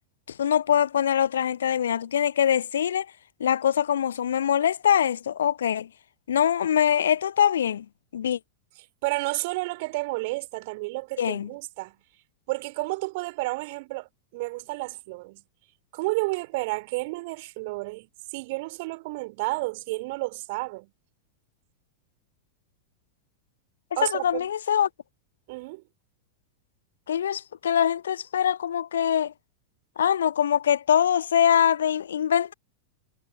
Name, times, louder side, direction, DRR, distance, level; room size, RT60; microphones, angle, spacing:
voice 1, 0.4-3.1 3.4-5.9 6.3-7.9 8.1-8.4 11.2-11.5 24.0-24.9 27.1-29.3 30.0-32.5, left 9 dB, 65° left, 0.4 m, -23 dB
voice 2, 9.0-12.0 12.5-15.4 15.9-20.9 24.0-24.5 25.5-25.8, right 24 dB, 50° right, 5.0 m, -31 dB
figure-of-eight pair, 90°, 0 cm